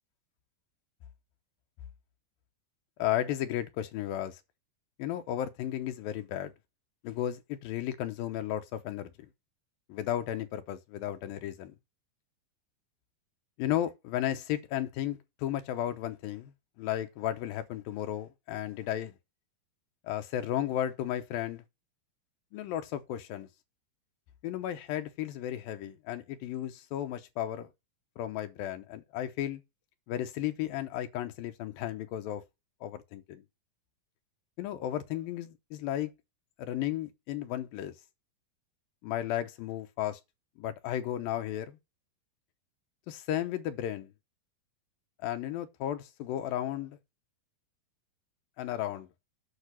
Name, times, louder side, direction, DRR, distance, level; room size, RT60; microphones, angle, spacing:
voice 1, 3.0-4.4 5.0-6.5 7.0-9.1 9.9-11.8 13.6-16.5 16.8-19.1 20.0-21.6 22.5-23.5 24.4-27.7 28.2-29.6 30.1-32.4 32.8-33.4 34.6-36.1 36.6-37.9 39.0-40.2 40.6-41.8 43.1-44.1 45.2-47.0 48.6-49.1, left 12 dB, 80° left, 2.5 m, -34 dB
8.3 x 5.7 x 6.1 m
omnidirectional pair, 4.3 m